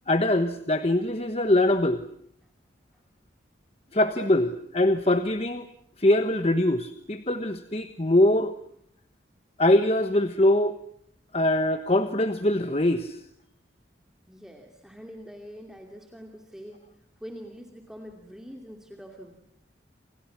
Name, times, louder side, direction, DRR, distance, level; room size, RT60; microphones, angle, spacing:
voice 1, 0.1-2.0 3.9-5.7 6.0-8.5 9.6-10.8 11.3-13.2, left 1 dB, 30° left, 9 dB, 1.2 m, -23 dB
voice 2, 14.3-19.4, equal, 5° right, 2 dB, 2.6 m, -44 dB
29.0 x 29.0 x 6.0 m, 0.68 s
head